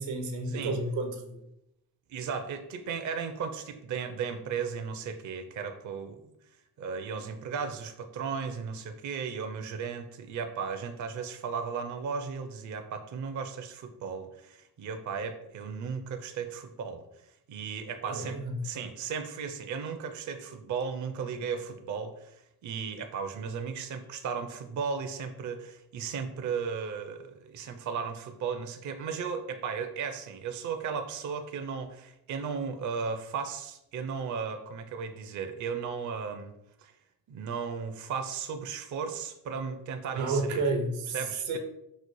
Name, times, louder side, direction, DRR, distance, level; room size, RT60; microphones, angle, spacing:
voice 1, 0.0-1.4 18.0-18.7 40.1-41.6, right 3 dB, 70° right, 5 dB, 0.8 m, -31 dB
voice 2, 2.1-6.2 6.8-17.0 17.5-36.5 36.8-36.9 37.3-40.6 41.1-41.6, right 6 dB, 40° right, 7 dB, 0.5 m, -35 dB
5.3 x 2.0 x 3.0 m, 0.81 s
hypercardioid pair, 45°, 48 cm